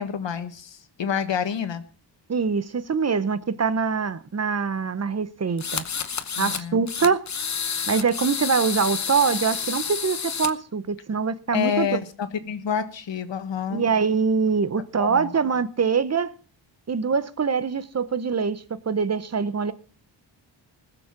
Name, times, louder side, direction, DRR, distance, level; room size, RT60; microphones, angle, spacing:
voice 1, 0.0-1.8 6.4-6.9 11.5-13.8 15.0-15.3, left 7 dB, 75° left, 1.6 m, -28 dB
voice 2, 2.3-5.8 6.4-7.2 7.9-11.9 13.7-16.3 16.9-19.7, right 5 dB, 35° right, 0.8 m, -24 dB
sound 1, 5.6-6.6 6.9-10.5, left 6 dB, 40° left, 0.9 m, -29 dB
20.0 x 7.0 x 5.9 m
wide cardioid pair, 175°, 45 cm